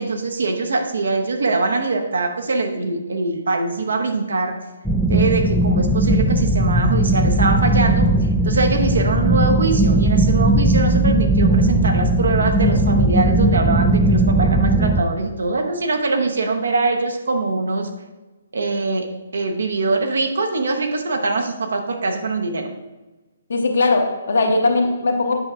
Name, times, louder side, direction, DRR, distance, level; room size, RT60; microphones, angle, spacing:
voice 1, 0.0-4.6 5.1-8.1 8.4-17.9 18.5-19.1 19.3-22.7, right 3 dB, 60° right, 4 dB, 0.9 m, -22 dB
sound 1, 4.8-15.0, right 1 dB, ahead, 0.3 m, -17 dB
voice 2, 23.5-25.4, left 3 dB, 55° left, 4 dB, 0.9 m, -19 dB
8.5 x 5.6 x 2.4 m, 1.2 s
figure-of-eight pair, 130°, 0 cm